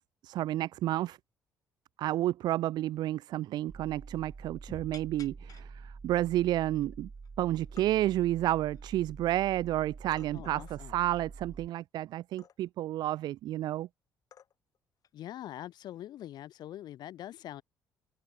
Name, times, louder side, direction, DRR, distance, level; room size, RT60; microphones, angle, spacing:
voice 1, 0.2-1.2 2.0-7.1 7.4-13.9, right 14 dB, 70° right, 0.7 m, -31 dB
sound 1, 3.0-3.1 3.4-3.5 3.8-4.4 4.9-5.7 6.3-6.4 6.7-7.3 7.6-7.9 8.5-9.3 10.1-10.8 12.4-12.8 13.8-13.9 14.3-14.8 15.0-15.2 16.3-16.6, left 8 dB, 55° left, 2.7 m, -56 dB
sound 2, 3.7-11.7, right 4 dB, 30° right, 2.8 m, -47 dB
sound 3, 4.7-8.6, left 3 dB, 25° left, 7.6 m, -58 dB
voice 2, 10.3-11.0 15.1-17.6, left 12 dB, 70° left, 4.8 m, -43 dB
open air
supercardioid pair, 75°, 7 cm